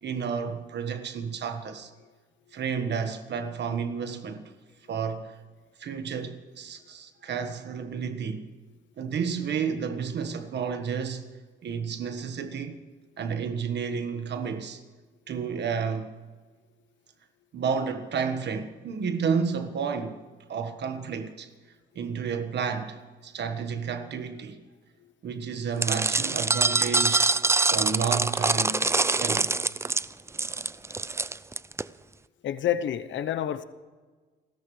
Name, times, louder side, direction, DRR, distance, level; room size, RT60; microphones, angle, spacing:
voice 1, 0.0-1.9 2.5-4.5 4.9-5.4 5.8-8.5 9.0-11.3 11.6-12.8 13.2-14.8 15.3-16.1 17.5-20.2 20.5-21.5 21.9-24.6 25.2-27.3 27.7-28.9 29.2-29.5, right 6 dB, 60° right, 1.5 m, -31 dB
Pouring cat biscuit into a bowl, 25.8-31.8, right 3 dB, 15° right, 0.4 m, -24 dB
voice 2, 32.4-33.6, left 10 dB, 70° left, 0.9 m, -28 dB
30.0 x 14.5 x 3.3 m
cardioid pair, 90°, 20 cm